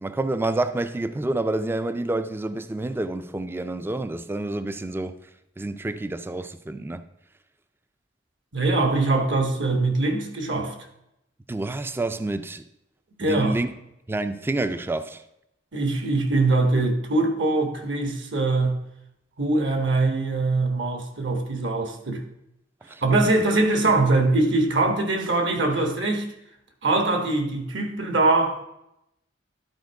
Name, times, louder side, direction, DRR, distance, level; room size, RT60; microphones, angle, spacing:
voice 1, 0.0-5.2 5.6-7.0 11.5-12.6 13.2-13.7 14.1-15.2 22.9-23.0, right 2 dB, 10° right, 0.3 m, -28 dB
voice 2, 8.5-10.7 13.2-13.6 15.7-18.8 19.4-22.2 23.0-26.3 26.8-28.6, right 2 dB, 70° right, 1.4 m, -22 dB
11.5 x 4.3 x 4.6 m
head